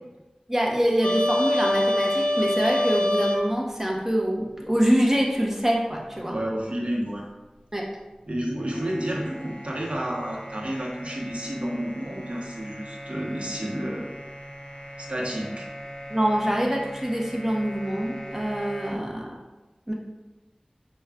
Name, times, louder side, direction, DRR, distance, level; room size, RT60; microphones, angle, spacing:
voice 1, 0.5-6.4 7.7-7.8 16.1-19.3 19.9-20.0, equal, 15° right, -2 dB, 0.9 m, -25 dB
sound 1, 1.0-3.4 8.5-18.9, left 1 dB, 50° left, 0.8 m, -30 dB
voice 2, 6.3-7.3 8.3-14.1 15.0-15.7, equal, 55° right, -2 dB, 0.9 m, -30 dB
5.7 x 2.3 x 3.6 m, 1.1 s
wide cardioid pair, 50°, 2 cm